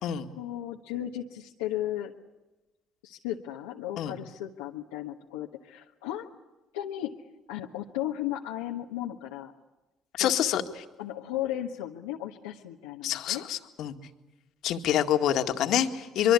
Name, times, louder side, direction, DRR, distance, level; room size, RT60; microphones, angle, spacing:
voice 1, 0.3-2.1 3.0-6.3 6.7-7.1 7.5-9.5 10.2-10.3 11.0-13.4, left 12 dB, 90° left, 0 dB, 1.3 m, -35 dB
voice 2, 10.1-10.8 13.0-13.9 14.6-16.3, left 10 dB, 70° left, 6 dB, 2.0 m, -26 dB
25.0 x 23.0 x 8.5 m, 1.1 s
supercardioid pair, 65°, 0 cm